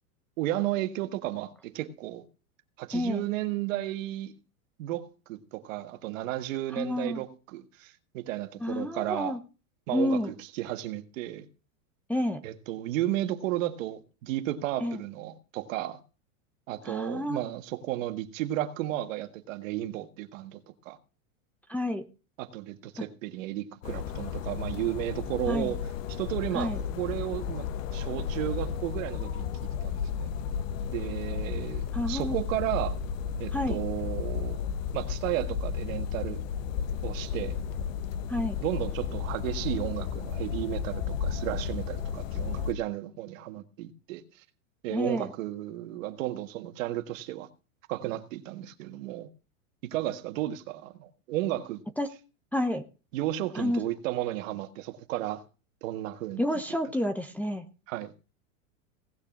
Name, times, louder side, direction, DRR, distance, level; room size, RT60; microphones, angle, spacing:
voice 1, 0.4-2.3 2.8-4.4 4.8-9.4 9.9-10.2 10.5-11.5 12.4-16.0 16.7-21.0 22.4-25.9 26.2-30.3 30.9-33.0 33.4-34.6 34.9-36.4 37.0-37.6 38.6-44.2 44.8-47.5 47.9-49.3 49.8-51.8 53.1-55.4 55.8-56.4 57.9-58.1, right 14 dB, 65° right, 1.8 m, -33 dB
voice 2, 2.9-3.3 6.7-7.2 8.6-9.4 9.9-10.3 12.1-12.4 14.8-15.0 16.8-17.4 21.7-22.0 25.5-25.7 26.5-26.8 31.9-32.4 33.5-33.8 38.3-38.6 44.9-45.3 52.0-52.1 52.5-52.8 53.5-53.8 56.4-57.7, left 1 dB, 5° left, 0.8 m, -29 dB
sound 1, 23.8-42.7, left 7 dB, 60° left, 1.4 m, -33 dB
17.5 x 6.7 x 6.2 m
supercardioid pair, 135°, 42 cm